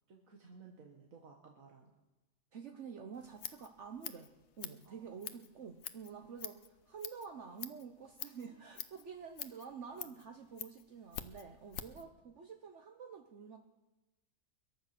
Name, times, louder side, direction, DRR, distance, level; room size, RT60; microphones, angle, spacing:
voice 1, 0.1-1.9 4.8-5.2 8.4-8.7 10.0-10.2 11.9-12.1, right 5 dB, 85° right, 0 dB, 2.0 m, -58 dB
voice 2, 2.5-4.3 4.6-13.6, right 6 dB, 65° right, 4 dB, 1.3 m, -49 dB
Scissors, 3.1-12.1, left 10 dB, 90° left, 1.2 m, -48 dB
22.0 x 10.5 x 6.0 m, 1.1 s
omnidirectional pair, 1.4 m